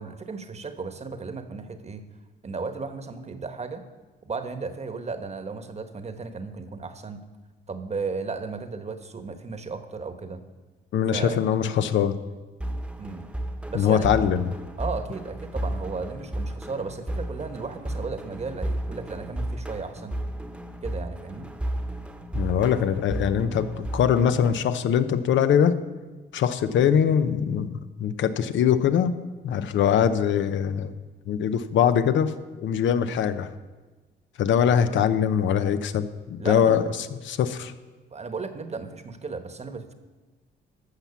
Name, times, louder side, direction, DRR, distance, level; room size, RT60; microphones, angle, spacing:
voice 1, 0.0-2.0 2.4-3.8 4.2-7.2 7.7-10.4 11.1-11.4 13.0-13.3 13.7-14.2 14.8-20.2 20.8-21.5 36.4-36.8 38.1-39.9, right 4 dB, 35° right, 8 dB, 1.2 m, -35 dB
voice 2, 10.9-12.2 13.7-14.5 22.3-25.8 26.3-29.2 29.4-30.9 31.3-33.5 34.4-36.9 37.2-37.7, left 8 dB, 70° left, 11 dB, 0.8 m, -22 dB
sound 1, 12.6-24.6, right 1 dB, 5° right, 1.1 m, -33 dB
13.5 x 5.9 x 7.0 m, 1.3 s
cardioid pair, 90°, 20 cm